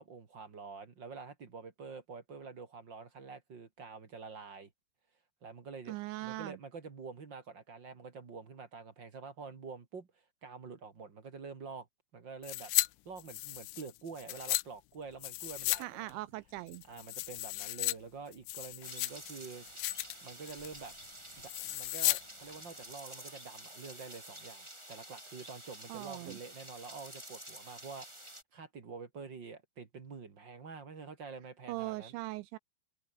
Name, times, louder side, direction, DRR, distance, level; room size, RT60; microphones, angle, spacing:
voice 1, 0.0-4.7 5.4-5.9 6.2-11.9 12.1-12.7 13.0-16.2 16.9-19.7 20.2-20.9 21.4-32.1, right 5 dB, 40° right, 1.6 m, -47 dB
voice 2, 5.9-6.6 15.8-16.8 25.9-26.4 31.7-32.6, right 19 dB, 85° right, 2.6 m, -40 dB
sound 1, 12.4-12.9 13.2-14.6 15.2-15.8 16.1-16.2 16.7-17.9 18.3-19.3 19.7-20.2 20.5-20.8 21.5-22.2 22.5-22.6, left 21 dB, 80° left, 3.0 m, -34 dB
sound 2, 18.8-28.4, right 1 dB, 5° right, 5.1 m, -50 dB
omnidirectional pair, 5.8 m